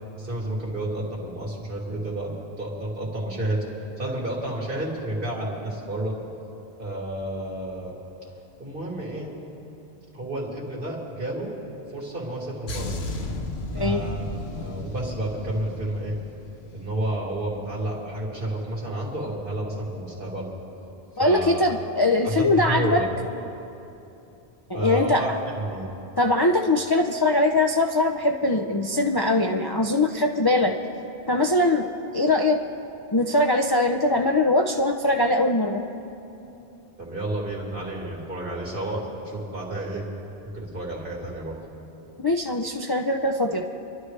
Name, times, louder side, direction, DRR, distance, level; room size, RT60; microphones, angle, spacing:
voice 1, 0.2-3.6 4.0-6.2 6.8-7.9 8.6-9.3 10.1-11.6 11.9-13.0 13.7-16.2 16.7-20.5 21.2-21.6 22.2-23.1 24.7-25.9 37.0-40.0 40.5-41.6, right 1 dB, 60° right, -4 dB, 2.9 m, -30 dB
sound 1, 12.7-17.2 17.5-17.8, left 2 dB, 85° left, 1.2 m, -34 dB
voice 2, 21.2-23.0 24.7-25.2 26.2-30.7 31.3-31.9 32.1-32.6 33.1-35.8 42.2-43.7, left 2 dB, 30° left, 2 dB, 0.5 m, -22 dB
27.0 x 12.0 x 3.3 m, 2.8 s
omnidirectional pair, 1.1 m